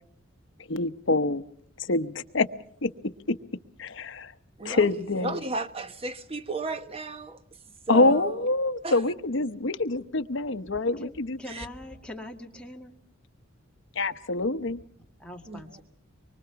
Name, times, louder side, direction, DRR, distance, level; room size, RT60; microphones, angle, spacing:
voice 1, 0.7-1.4 1.8-2.5 2.8-2.9 3.8-4.3 4.6-5.4 7.9-11.4 14.0-14.8, left 2 dB, 60° left, 0.9 m, -25 dB
voice 2, 5.2-7.4 7.9-8.3 8.8-9.0 11.5-11.6 15.5-15.8, right 3 dB, 30° right, 1.1 m, -34 dB
voice 3, 11.0-12.9 15.2-15.8, left 1 dB, 5° left, 1.9 m, -42 dB
25.0 x 24.0 x 5.8 m
head